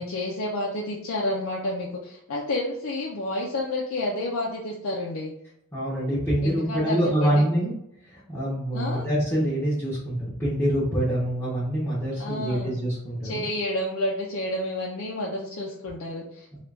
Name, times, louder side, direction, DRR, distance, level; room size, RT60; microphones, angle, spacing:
voice 1, 0.0-5.3 6.4-7.5 8.7-9.0 12.2-12.7 13.2-16.6, left 1 dB, 80° left, -3 dB, 0.5 m, -30 dB
voice 2, 5.7-7.7 8.1-13.4 16.5-16.6, right 1 dB, 15° left, -9 dB, 0.8 m, -25 dB
3.0 x 2.4 x 3.3 m, 0.77 s
head